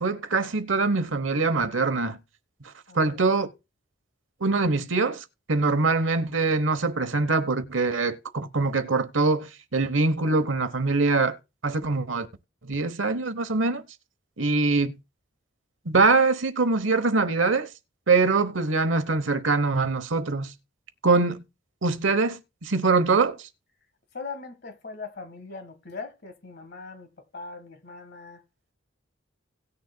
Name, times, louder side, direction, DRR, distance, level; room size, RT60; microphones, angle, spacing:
voice 1, 0.0-2.2 2.9-3.5 4.4-11.4 11.6-12.3 12.6-13.8 14.4-14.9 15.9-17.7 18.1-20.5 21.0-21.4 21.8-23.5, right 3 dB, 90° right, 0.9 m, -23 dB
voice 2, 2.9-3.2 24.1-28.4, left 4 dB, 55° left, 1.5 m, -40 dB
18.0 x 6.7 x 2.2 m
head